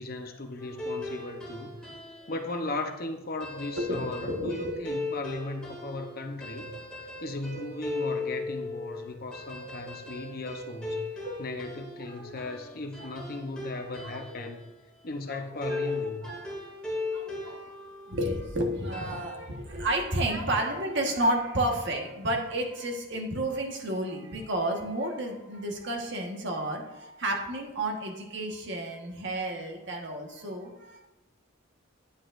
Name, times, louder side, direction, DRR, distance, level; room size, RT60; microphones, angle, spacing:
voice 1, 0.0-1.8 2.3-6.8 7.2-14.6 15.0-16.3, left 2 dB, 45° left, 0.8 m, -37 dB
sound 1, 0.6-2.4 3.4-14.6 15.6-18.5 18.9-19.4, left 2 dB, 5° left, 2.4 m, -37 dB
voice 2, 3.8-4.8 9.5-10.3 11.2-11.4 12.1-13.1 14.0-14.6 15.3-15.4 15.7-16.4 17.1-31.1, right 1 dB, 60° right, 1.3 m, -32 dB
9.6 x 8.2 x 2.5 m
head